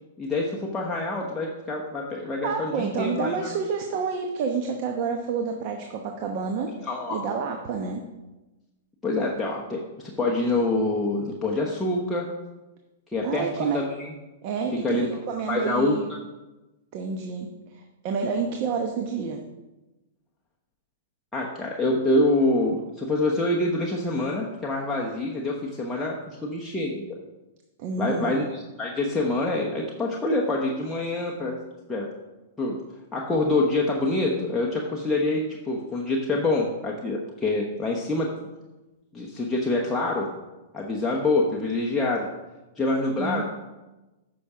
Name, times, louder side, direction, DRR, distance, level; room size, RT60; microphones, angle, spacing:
voice 1, 0.2-3.3 6.8-7.3 9.0-12.3 13.1-14.1 14.8-15.2 15.5-16.0 21.3-27.2 28.0-31.6 31.9-32.1 32.6-32.8 33.1-38.3 39.1-40.3 40.7-42.3 42.8-43.4, left 2 dB, 10° left, -3 dB, 1.0 m, -26 dB
voice 2, 2.4-6.7 7.1-8.0 13.2-13.8 14.4-16.1 16.9-19.4 27.8-28.4 43.2-43.4, right 5 dB, 45° right, 3 dB, 1.0 m, -29 dB
8.3 x 6.0 x 4.9 m, 1.1 s
hypercardioid pair, 130°, 0 cm